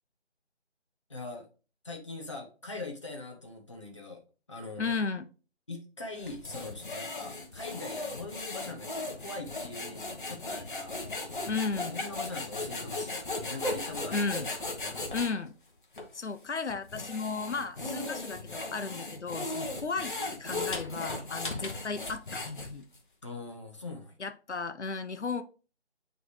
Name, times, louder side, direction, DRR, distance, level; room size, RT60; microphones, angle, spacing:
voice 1, 1.1-1.5 1.8-4.2 4.5-5.0 5.7-11.0 11.9-14.3 14.6-15.2 23.2-24.1, left 3 dB, 25° left, 1 dB, 0.8 m, -42 dB
voice 2, 4.8-5.3 11.5-12.0 14.1-14.5 15.1-15.5 16.1-22.9 24.2-25.4, left 4 dB, 80° left, 10 dB, 0.8 m, -34 dB
sound 1, 6.2-15.3 15.9-16.1 16.7-23.0, left 2 dB, 45° left, 1.3 m, -37 dB
9.0 x 3.3 x 3.2 m, 0.35 s
figure-of-eight pair, 165°, 34 cm